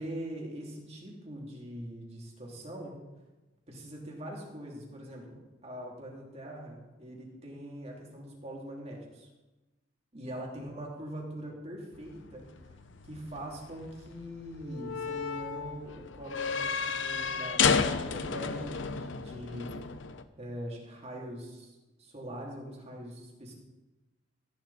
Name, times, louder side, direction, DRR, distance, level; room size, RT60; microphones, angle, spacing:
voice 1, 0.0-3.0 3.7-9.3 10.1-12.5 13.1-19.8 20.4-23.5, equal, 35° right, -2 dB, 3.2 m, -42 dB
sound 1, 11.9-20.2, left 5 dB, 75° left, 0.8 m, -32 dB
14.5 x 11.0 x 4.3 m, 1.1 s
head